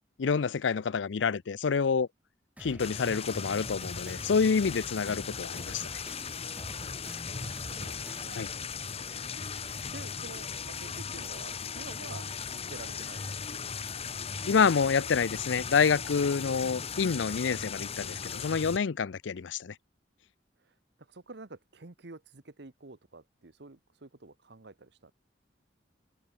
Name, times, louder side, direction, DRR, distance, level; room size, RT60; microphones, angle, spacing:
voice 1, 0.2-2.1 2.6-5.9 8.3-8.5 14.5-19.7, left 5 dB, 85° left, 0.5 m, -27 dB
Drum kit, 2.6-8.6, right 1 dB, 10° right, 2.3 m, -49 dB
sound 1, 2.8-18.8, left 6 dB, 35° left, 1.3 m, -38 dB
voice 2, 7.1-8.8 9.9-13.8 17.4-17.9 20.6-25.1, right 3 dB, 65° right, 1.2 m, -50 dB
sound 2, 18.9-19.4, left 3 dB, 15° left, 7.6 m, -62 dB
head